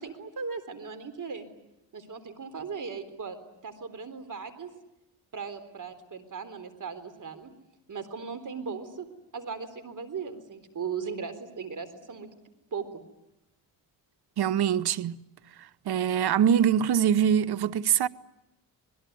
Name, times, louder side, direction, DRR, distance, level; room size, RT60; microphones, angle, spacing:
voice 1, 0.0-1.5 1.9-3.4 3.6-4.7 5.3-7.5 7.9-9.1 9.3-12.3 12.7-13.0, right 5 dB, 45° right, 3.8 m, -37 dB
voice 2, 14.4-15.2 15.6-18.1, right 8 dB, 60° right, 1.1 m, -24 dB
27.0 x 21.0 x 9.4 m
cardioid pair, 90°, 44 cm